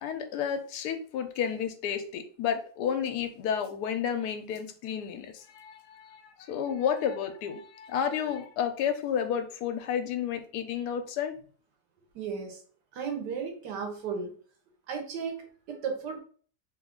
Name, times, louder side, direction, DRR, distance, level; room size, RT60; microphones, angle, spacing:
voice 1, 0.0-11.4, left 8 dB, 75° left, 6 dB, 1.1 m, -31 dB
voice 2, 12.1-12.6 12.9-14.3 14.9-16.2, right 6 dB, 85° right, 3 dB, 1.4 m, -35 dB
3.2 x 2.4 x 3.5 m, 0.44 s
omnidirectional pair, 1.8 m